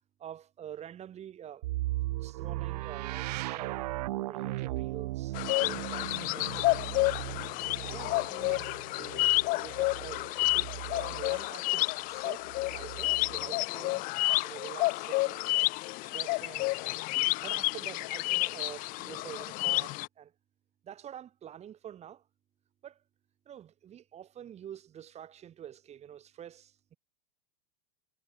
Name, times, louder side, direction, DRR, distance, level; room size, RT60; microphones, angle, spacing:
voice 1, 0.2-1.7 2.2-3.9 4.3-7.0 7.8-8.7 9.0-14.0 14.4-15.5 16.0-16.8 17.4-20.3 20.8-22.3 22.8-23.0 23.5-27.0, right 10 dB, 30° right, 7.9 m, -47 dB
sound 1, 1.6-11.4 12.5-13.5, right 18 dB, 70° right, 0.5 m, -37 dB
sound 2, 5.3-20.1, left 23 dB, 40° left, 0.5 m, -30 dB
hypercardioid pair, 110°, 21 cm